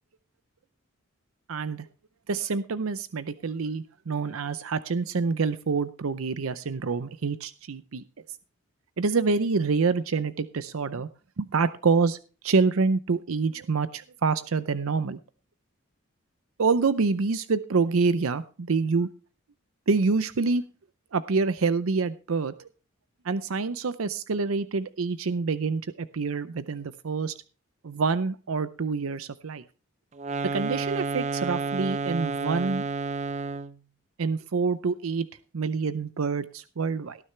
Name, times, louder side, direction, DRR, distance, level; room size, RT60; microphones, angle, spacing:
voice 1, 1.5-1.9 2.3-8.0 9.0-11.1 11.4-12.2 12.4-15.2 16.6-19.1 19.9-20.6 21.1-22.7 23.2-27.3 27.8-29.6 30.5-32.8 34.2-35.3 35.5-37.2, right 4 dB, 80° right, 14 dB, 0.6 m, -26 dB
sound 1, 30.2-33.8, right 3 dB, 35° right, 0.6 m, -30 dB
18.0 x 9.8 x 3.2 m, 0.35 s
head